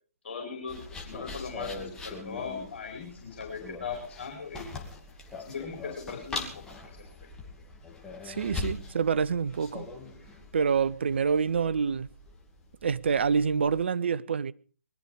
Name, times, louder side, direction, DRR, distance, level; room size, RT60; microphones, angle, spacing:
voice 1, 0.2-4.7 5.4-7.3, left 5 dB, 45° left, 5.2 m, -39 dB
sound 1, 0.7-13.8, left 3 dB, 10° left, 2.5 m, -42 dB
voice 2, 8.2-9.9 10.5-12.1 12.8-14.5, right 6 dB, 50° right, 0.7 m, -27 dB
21.5 x 13.0 x 5.0 m
figure-of-eight pair, 135°, 8 cm